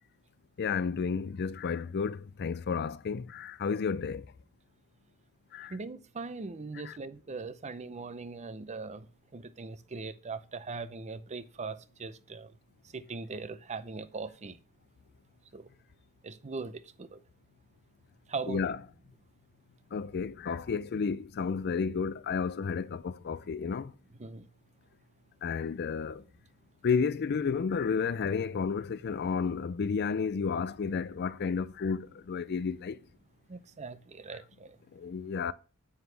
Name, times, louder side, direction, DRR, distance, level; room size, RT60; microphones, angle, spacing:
voice 1, 0.6-4.3 5.5-5.8 6.8-7.0 18.5-18.8 19.9-23.9 25.4-26.2 26.8-33.0 34.9-35.5, left 5 dB, 50° left, 0.4 m, -32 dB
voice 2, 5.7-9.1 9.3-12.5 12.9-14.6 15.5-15.7 16.2-17.2 18.3-18.6 24.2-24.5 33.5-34.8, right 4 dB, 30° right, 0.6 m, -40 dB
9.4 x 8.0 x 3.3 m
head